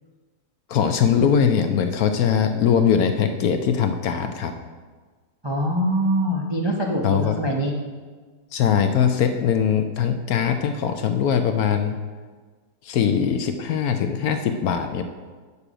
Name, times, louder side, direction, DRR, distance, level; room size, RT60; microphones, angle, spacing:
voice 1, 0.7-4.5 7.0-7.4 8.5-12.0 12.8-15.0, left 7 dB, 70° left, 7 dB, 0.9 m, -21 dB
voice 2, 5.4-7.7, right 1 dB, 35° right, -1 dB, 0.4 m, -23 dB
8.2 x 6.9 x 5.0 m, 1.4 s
omnidirectional pair, 1.9 m